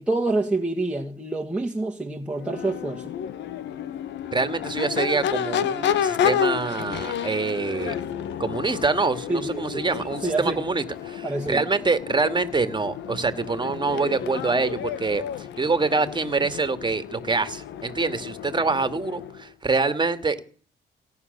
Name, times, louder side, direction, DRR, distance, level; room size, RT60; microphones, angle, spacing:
voice 1, 0.0-3.0 9.3-10.6 11.2-11.6, right 2 dB, 5° right, 1.8 m, -27 dB
Crowd / Race car auto racing / Accelerating revving vroom, 2.3-19.4, left 9 dB, 75° left, 1.0 m, -31 dB
voice 2, 4.3-7.9 8.4-20.4, right 4 dB, 25° right, 2.1 m, -25 dB
17.5 x 9.7 x 6.8 m
supercardioid pair, 70°, 19 cm